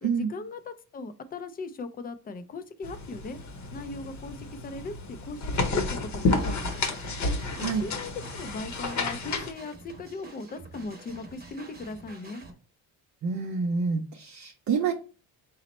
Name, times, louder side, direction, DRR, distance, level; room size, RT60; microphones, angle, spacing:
voice 1, 0.0-3.4 3.7-4.9 5.2-5.8 6.1-6.8 7.6-12.4, left 3 dB, 25° left, 12 dB, 0.3 m, -38 dB
sound 1, 2.8-9.5, left 3 dB, 45° left, 0.8 m, -31 dB
sound 2, 6.3-12.5, right 2 dB, 25° right, 0.9 m, -48 dB
voice 2, 13.2-14.9, right 5 dB, 45° right, 4 dB, 0.5 m, -27 dB
4.0 x 2.0 x 4.1 m, 0.36 s
cardioid pair, 105°, 39 cm